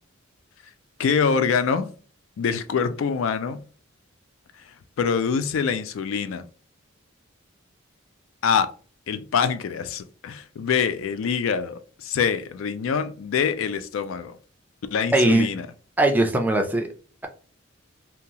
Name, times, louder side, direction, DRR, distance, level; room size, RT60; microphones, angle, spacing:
voice 1, 1.0-1.9 2.4-3.6 5.0-6.4 8.4-8.7 9.1-14.4 14.9-15.7, left 6 dB, 75° left, 0.3 m, -25 dB
voice 2, 15.1-15.5 16.0-16.9, right 2 dB, 10° right, 0.4 m, -20 dB
2.9 x 2.3 x 2.6 m
head